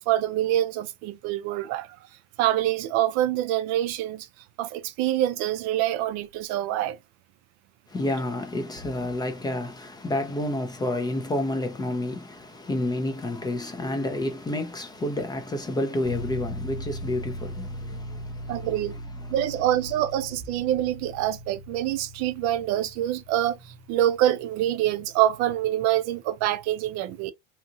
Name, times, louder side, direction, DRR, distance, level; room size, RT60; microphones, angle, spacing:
voice 1, 0.1-1.9 2.4-4.3 4.6-7.0 18.5-18.9 19.3-23.6 23.9-27.3, right 13 dB, 55° right, 0.4 m, -25 dB
voice 2, 7.9-18.7 19.2-19.5, left 1 dB, 15° left, 0.4 m, -30 dB
sound 1, 16.0-25.8, equal, 85° left, 1.0 m, -39 dB
2.8 x 2.6 x 2.4 m
supercardioid pair, 140°, 32 cm